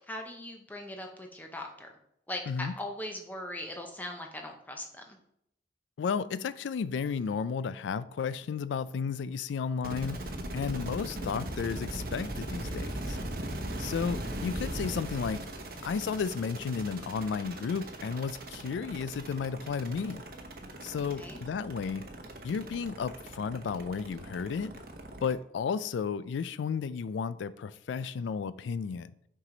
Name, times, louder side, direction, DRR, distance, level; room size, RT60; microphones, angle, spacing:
voice 1, 0.1-1.9 2.3-5.2 21.2-21.4, left 1 dB, 10° left, 0.7 m, -40 dB
voice 2, 6.0-13.2 13.8-15.5 15.8-20.2 20.8-22.1 22.4-24.7 25.2-29.1, left 6 dB, 90° left, 0.3 m, -33 dB
sound 1, 9.8-25.3, right 1 dB, 55° right, 0.8 m, -39 dB
6.0 x 4.7 x 3.9 m
head